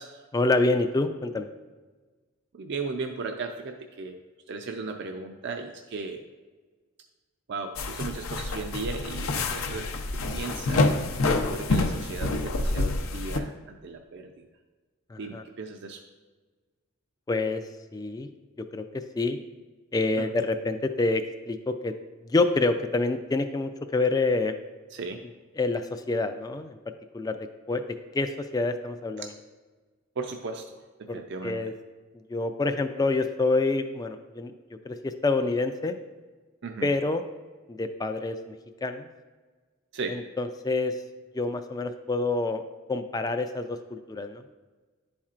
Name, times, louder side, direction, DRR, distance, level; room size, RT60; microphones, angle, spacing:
voice 1, 0.3-1.5 11.3-11.6 15.1-15.4 17.3-17.6 17.9-18.3 18.7-18.8 19.2-19.4 19.9-21.9 22.2-24.5 25.6-26.8 27.1-27.4 27.7-27.8 28.1-29.3 31.1-31.7 32.3-34.5 34.8-36.0 36.8-37.2 37.7-38.6 38.8-39.1 40.1-40.9 41.3-42.6 42.9-44.4, left 3 dB, 20° left, 7 dB, 0.3 m, -27 dB
voice 2, 2.5-4.2 4.5-6.2 7.5-9.9 10.3-11.0 11.5-14.5 15.2-16.0 24.9-25.2 30.2-30.8 31.1-31.6 36.6-36.9 39.9-40.2, right 4 dB, 55° right, 4 dB, 0.4 m, -36 dB
sound 1, 7.8-13.4, left 2 dB, 80° left, 0.6 m, -27 dB
11.0 x 4.3 x 2.5 m, 1.3 s
head